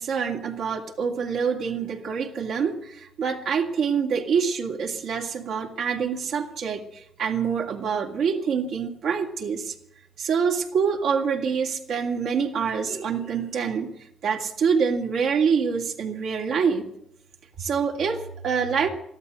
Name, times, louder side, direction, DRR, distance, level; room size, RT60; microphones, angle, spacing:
voice 1, 0.0-9.8 10.2-16.9 17.6-18.9, right 6 dB, 75° right, 1 dB, 2.6 m, -26 dB
14.0 x 12.5 x 7.9 m, 0.74 s
cardioid pair, 90°, 0 cm